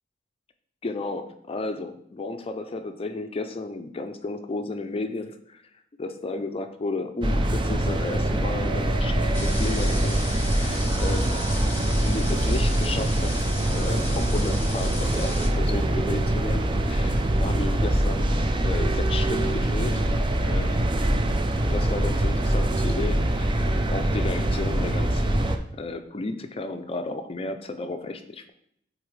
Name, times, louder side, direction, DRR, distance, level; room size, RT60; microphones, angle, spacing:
voice 1, 0.8-5.6 6.0-11.4 12.0-20.1 20.4-20.9 21.6-28.5, left 3 dB, 30° left, 7 dB, 0.4 m, -33 dB
sound 1, 7.2-25.6, right 1 dB, 25° right, 0.5 m, -24 dB
sound 2, 9.3-15.5, left 2 dB, 10° left, 1.1 m, -37 dB
8.4 x 3.9 x 3.2 m, 0.70 s
head